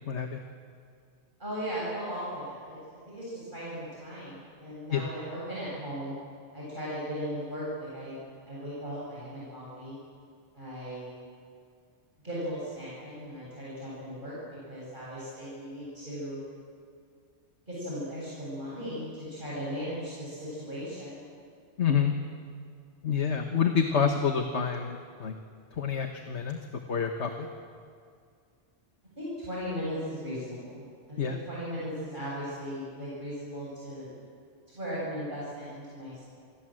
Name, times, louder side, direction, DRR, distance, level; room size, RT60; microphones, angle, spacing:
voice 1, 0.1-0.4 4.9-5.0 21.8-22.1 23.0-25.3 25.7-26.6 26.9-27.5 31.2-31.4, left 7 dB, 75° left, 4 dB, 1.8 m, -27 dB
voice 2, 1.4-2.8 3.1-6.2 6.5-8.2 8.5-10.0 10.5-11.1 12.2-14.4 14.7-16.4 17.7-21.2 29.2-34.1 34.7-36.2, equal, 45° right, -7 dB, 8.0 m, -37 dB
29.0 x 26.0 x 7.8 m, 2.2 s
omnidirectional pair, 1.2 m